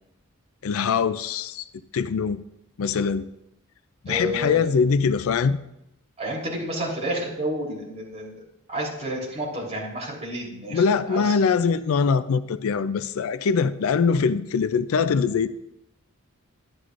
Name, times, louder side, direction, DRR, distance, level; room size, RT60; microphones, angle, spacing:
voice 1, 0.6-1.7 1.9-2.4 2.8-3.3 4.0-5.6 10.7-15.5, left 5 dB, 70° left, 14 dB, 0.4 m, -22 dB
voice 2, 4.1-4.6 6.2-8.4 8.7-10.8 11.1-11.2, equal, 30° right, -4 dB, 3.5 m, -30 dB
11.5 x 11.0 x 2.5 m, 0.86 s
head